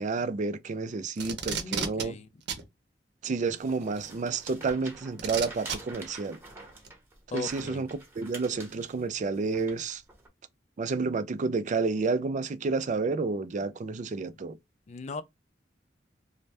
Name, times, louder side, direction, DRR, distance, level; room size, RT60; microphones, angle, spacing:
voice 1, 0.0-2.1 3.2-6.4 7.3-10.0 10.8-14.6, right 4 dB, 45° right, 0.4 m, -30 dB
Packing tape duct tape, 1.1-2.0 2.5-2.6 4.0-4.1 5.2-5.8 6.8-6.9, right 6 dB, 65° right, 0.7 m, -32 dB
voice 2, 1.4-2.3 7.3-7.8 14.9-15.2, left 4 dB, 40° left, 0.4 m, -38 dB
sound 1, 3.6-10.3, right 2 dB, 15° right, 0.9 m, -47 dB
2.6 x 2.1 x 3.2 m
head